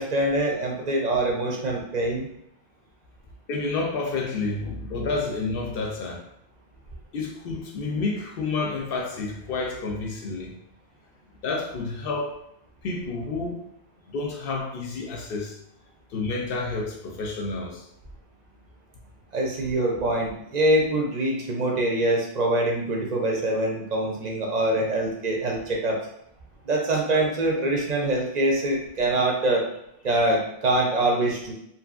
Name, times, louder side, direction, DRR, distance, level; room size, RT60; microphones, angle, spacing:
voice 1, 0.0-2.3 19.3-26.0 26.7-29.6 30.0-31.5, right 1 dB, 55° right, -1 dB, 0.5 m, -24 dB
voice 2, 3.5-6.2 7.1-10.6 11.4-12.4 12.8-13.6 14.1-15.6 16.1-17.9 27.1-27.3, left 3 dB, 65° left, 1 dB, 0.7 m, -29 dB
2.7 x 2.6 x 2.4 m, 0.77 s
omnidirectional pair, 1.1 m